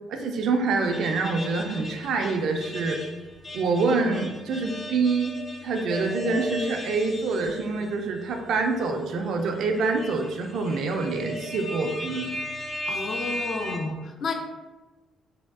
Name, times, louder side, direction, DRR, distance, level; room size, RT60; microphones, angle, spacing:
voice 1, 0.1-3.0 3.5-5.4 5.6-12.3, right 3 dB, 75° right, 4 dB, 0.3 m, -26 dB
sound 1, 0.8-7.9 8.3-8.4 9.4-13.8, left 1 dB, 40° left, 0.8 m, -37 dB
voice 2, 12.9-14.3, left 3 dB, 60° left, 4 dB, 0.4 m, -31 dB
3.4 x 2.2 x 2.3 m, 1.2 s
cardioid pair, 90°, 0 cm